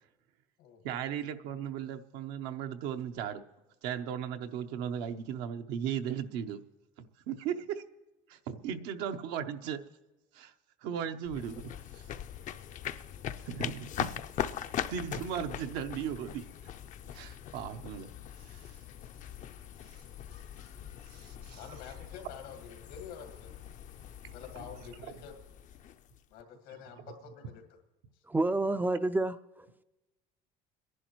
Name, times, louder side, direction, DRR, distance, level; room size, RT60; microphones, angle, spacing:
voice 1, 0.8-3.4 3.8-6.6 7.0-7.8 8.3-9.8 10.3-10.5 10.8-11.6 13.4-14.1 14.9-16.4 17.1-18.1 18.4-18.8 21.1-21.6 24.2-24.3, right 8 dB, 80° right, 7 dB, 0.9 m, -36 dB
sound 1, 11.3-26.4, left 10 dB, 50° left, 0.5 m, -41 dB
voice 2, 21.5-23.5 24.3-25.4 26.3-27.8 28.1-28.2, left 7 dB, 85° left, 5 dB, 2.0 m, -48 dB
voice 3, 28.3-29.7, right 2 dB, 10° right, 12 dB, 0.3 m, -29 dB
26.0 x 11.0 x 3.1 m, 1.1 s
cardioid pair, 110°, 17 cm